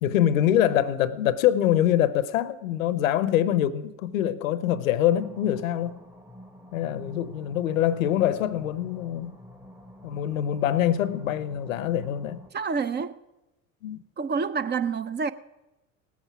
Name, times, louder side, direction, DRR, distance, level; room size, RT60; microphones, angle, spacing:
voice 1, 0.0-6.0 6.7-9.3 10.0-12.4 13.8-14.0, left 11 dB, 80° left, 0.8 m, -24 dB
sound 1, 5.0-12.5, left 1 dB, 5° right, 1.0 m, -47 dB
voice 2, 12.5-13.2 14.2-15.3, right 5 dB, 25° right, 0.6 m, -28 dB
18.0 x 8.4 x 6.0 m
hypercardioid pair, 75°, 40 cm